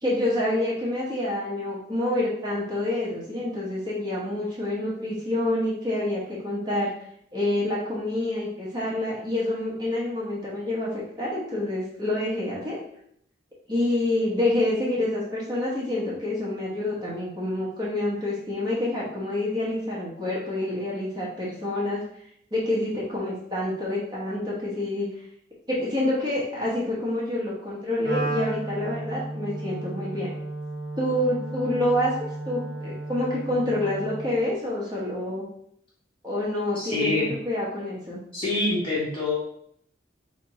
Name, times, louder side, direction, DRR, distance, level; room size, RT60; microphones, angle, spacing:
voice 1, 0.0-6.9 7.3-12.8 13.7-22.0 22.5-25.1 25.7-30.3 31.0-35.4 36.2-38.2, left 1 dB, 20° right, -6 dB, 1.0 m, -27 dB
Wind instrument woodwind instrument, 28.0-34.4, right 2 dB, 55° right, 1.1 m, -33 dB
voice 2, 36.7-37.3 38.3-39.3, left 2 dB, 30° left, -6 dB, 1.4 m, -25 dB
3.4 x 2.8 x 4.2 m, 0.69 s
head